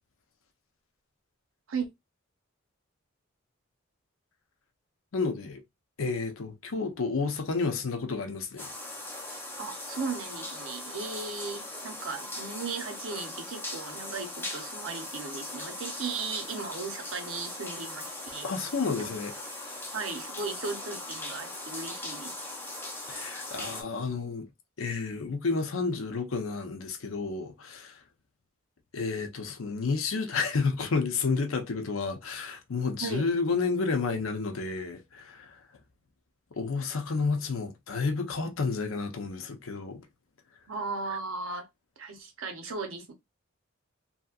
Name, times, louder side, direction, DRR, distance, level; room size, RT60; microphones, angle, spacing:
voice 1, 5.1-5.6 6.0-8.7 18.4-19.3 19.6-19.8 23.1-24.5 24.8-27.9 28.9-35.5 36.6-40.0, left 4 dB, 75° left, 0.7 m, -31 dB
sound 1, 8.6-23.8, left 2 dB, 10° left, 0.7 m, -39 dB
voice 2, 9.6-18.5 19.0-19.1 19.9-22.4 33.0-33.3 40.7-41.7 42.0-43.1, right 4 dB, 70° right, 0.8 m, -36 dB
3.0 x 2.8 x 2.4 m
head